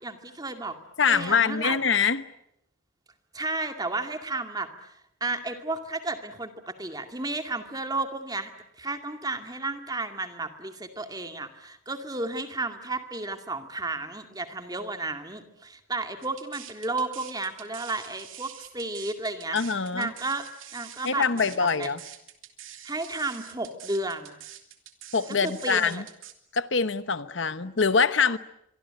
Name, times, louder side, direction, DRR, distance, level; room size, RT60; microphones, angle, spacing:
voice 1, 0.0-0.8 1.1-1.8 3.3-8.5 8.8-19.6 19.9-20.4 20.7-21.9 22.8-24.4 25.4-26.0, right 2 dB, 20° right, 6 dB, 2.3 m, -33 dB
voice 2, 1.0-2.2 19.5-20.1 21.0-22.0 25.1-26.0 26.5-28.4, left 5 dB, 70° left, 13 dB, 1.1 m, -24 dB
sound 1, 16.2-26.3, right 11 dB, 85° right, 2.8 m, -46 dB
25.0 x 24.5 x 8.9 m, 0.80 s
head